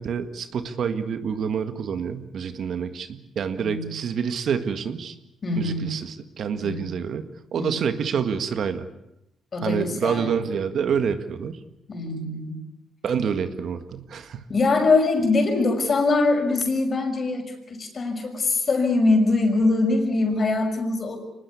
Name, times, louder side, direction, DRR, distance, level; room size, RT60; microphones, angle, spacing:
voice 1, 0.0-5.2 5.6-8.9 9.6-11.6 13.0-14.5, right 7 dB, 60° right, 9 dB, 1.8 m, -27 dB
voice 2, 5.4-5.9 6.6-6.8 7.6-7.8 9.5-10.3 11.9-12.6 14.5-21.2, left 3 dB, 40° left, 5 dB, 6.0 m, -23 dB
24.5 x 19.5 x 8.5 m, 0.83 s
cardioid pair, 90°, 0 cm